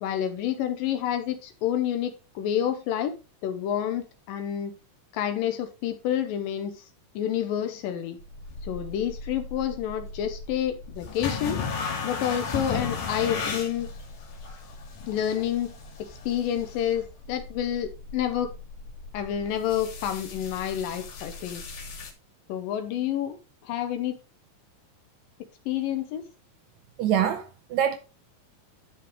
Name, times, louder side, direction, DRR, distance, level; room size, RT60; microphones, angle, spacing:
voice 1, 0.0-3.2 3.4-4.7 5.1-6.9 7.2-8.2 8.6-11.6 12.0-13.9 15.1-15.7 16.3-18.5 19.1-21.6 22.5-23.4 23.6-24.1 25.7-26.2, left 10 dB, 80° left, 2.5 m, -29 dB
sound 1, 8.2-22.1, left 5 dB, 65° left, 3.4 m, -36 dB
voice 2, 27.0-28.0, right 9 dB, 75° right, 1.7 m, -25 dB
11.0 x 5.9 x 3.1 m
omnidirectional pair, 4.0 m